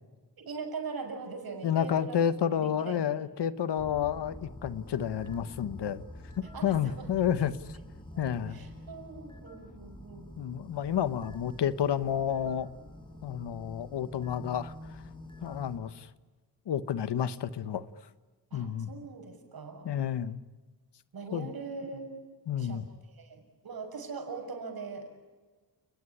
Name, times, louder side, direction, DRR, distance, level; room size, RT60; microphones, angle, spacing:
voice 1, 0.4-2.2 2.5-3.0 6.5-7.1 7.4-7.5 8.5-10.4 18.5-19.9 21.1-22.3 22.6-22.8 23.1-25.2, right 4 dB, 60° right, 4 dB, 6.5 m, -41 dB
voice 2, 1.6-6.0 6.4-7.5 8.2-8.6 10.4-12.7 13.2-14.7 15.4-16.1 16.7-17.8 18.5-18.9 19.8-20.4 21.3-21.5 22.5-22.8, left 9 dB, 85° left, 14 dB, 1.2 m, -30 dB
sound 1, 3.8-15.8, left 1 dB, 10° left, 5.7 m, -47 dB
29.5 x 20.0 x 9.9 m, 1.3 s
wide cardioid pair, 120°, 40 cm